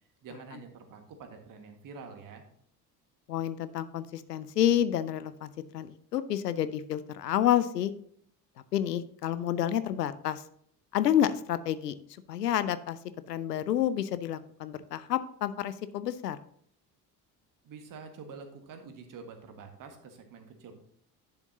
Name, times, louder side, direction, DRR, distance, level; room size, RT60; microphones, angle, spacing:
voice 1, 0.2-2.4 17.6-20.8, right 5 dB, 40° right, 5 dB, 1.6 m, -47 dB
voice 2, 3.3-7.9 8.7-10.4 10.9-11.9 12.3-13.0 13.3-16.4, left 11 dB, 80° left, 14 dB, 0.6 m, -29 dB
10.5 x 7.1 x 2.7 m, 0.64 s
figure-of-eight pair, 60°, 48 cm